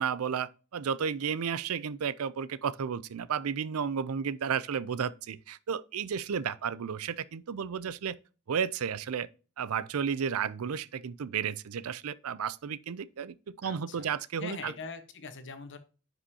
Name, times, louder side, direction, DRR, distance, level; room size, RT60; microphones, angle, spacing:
voice 1, 0.0-8.2 8.5-9.3 9.6-13.3 13.6-14.7, right 7 dB, 80° right, 0.5 m, -33 dB
voice 2, 13.6-14.1 14.4-15.8, left 4 dB, 60° left, 1.2 m, -42 dB
9.9 x 5.3 x 2.8 m
head